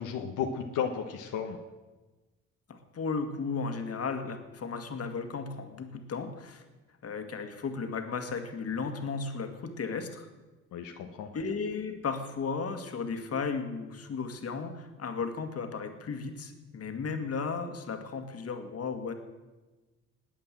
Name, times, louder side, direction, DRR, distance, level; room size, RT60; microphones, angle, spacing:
voice 1, 0.0-1.6 10.7-11.3, left 7 dB, 85° left, 3 dB, 1.3 m, -34 dB
voice 2, 2.7-6.6 7.0-10.3 11.3-19.1, left 5 dB, 50° left, 7 dB, 2.1 m, -35 dB
20.5 x 8.7 x 7.6 m, 1.2 s
cardioid pair, 90°, 30 cm